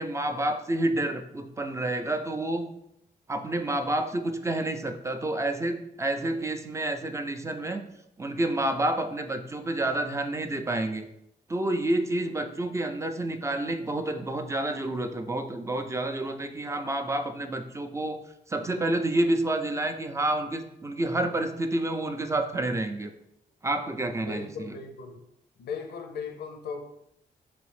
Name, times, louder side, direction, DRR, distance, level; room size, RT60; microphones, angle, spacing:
voice 1, 0.0-2.7 3.3-7.9 8.2-11.1 11.5-18.2 18.5-23.1 23.6-24.8, right 1 dB, 20° right, 7 dB, 0.4 m, -29 dB
voice 2, 24.2-25.2 25.6-26.8, left 5 dB, 90° left, 4 dB, 0.5 m, -37 dB
3.9 x 3.0 x 3.2 m, 0.79 s
cardioid pair, 85°, 16 cm